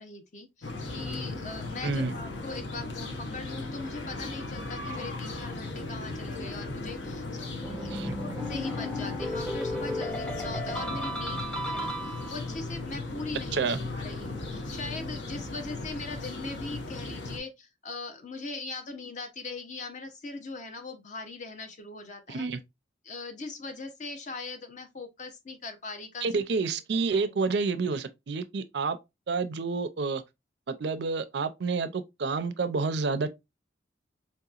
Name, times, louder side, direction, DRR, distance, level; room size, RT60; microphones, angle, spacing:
voice 1, 0.0-22.5 23.0-26.6 26.9-27.6, left 3 dB, 40° left, 0.7 m, -40 dB
sound 1, 0.6-17.4, left 2 dB, 75° left, 0.8 m, -37 dB
voice 2, 1.8-2.1 7.9-8.1 13.5-13.8 22.3-22.6 26.2-29.0 29.3-30.2 30.7-33.3, right 4 dB, 65° right, 0.5 m, -29 dB
sound 2, 7.6-12.6, left 1 dB, 5° left, 0.6 m, -35 dB
4.4 x 2.8 x 2.3 m
head